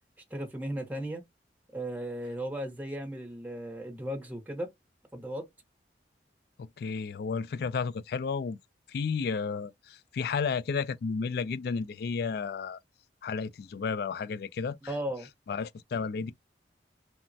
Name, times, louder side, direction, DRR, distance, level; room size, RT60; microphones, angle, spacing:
voice 1, 0.3-1.2 1.7-4.7 5.1-5.5 14.9-15.3, right 1 dB, 10° right, 0.7 m, -36 dB
voice 2, 6.6-8.6 8.9-12.8 13.2-14.9 15.5-16.3, left 5 dB, 60° left, 0.3 m, -32 dB
3.2 x 2.0 x 2.6 m
head